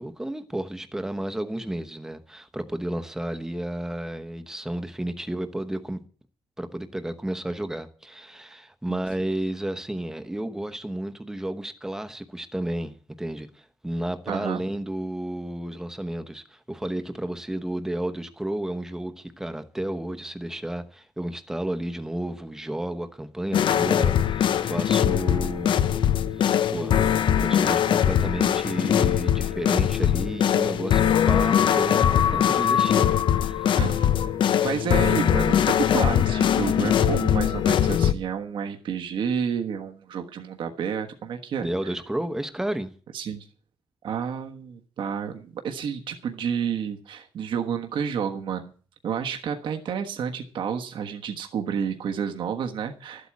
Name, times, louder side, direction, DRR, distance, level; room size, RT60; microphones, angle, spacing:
voice 1, 0.0-6.0 6.6-26.0 26.4-27.1 27.4-33.8 41.6-42.9, right 1 dB, 5° right, 1.0 m, -32 dB
voice 2, 14.3-14.6 33.7-34.1 34.6-41.9 43.1-43.5 44.0-48.7 49.0-53.3, right 7 dB, 70° right, 1.4 m, -30 dB
sound 1, 23.5-38.1, left 9 dB, 70° left, 0.7 m, -21 dB
13.0 x 8.2 x 8.5 m
wide cardioid pair, 175°, 9 cm